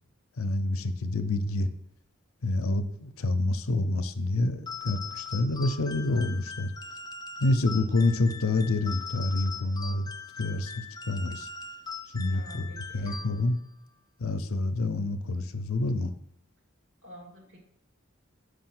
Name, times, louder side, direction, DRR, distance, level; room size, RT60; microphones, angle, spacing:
voice 1, 0.4-1.7 2.4-6.7 7.4-10.1 10.4-11.5 12.1-12.7 12.9-13.6 14.2-16.1, left 2 dB, 80° left, 9 dB, 0.6 m, -27 dB
sound 1, 4.7-13.7, left 5 dB, 20° left, 0.4 m, -41 dB
voice 2, 12.3-13.3 17.0-17.6, equal, 80° right, 0 dB, 2.3 m, -48 dB
5.5 x 5.1 x 6.0 m, 0.74 s
head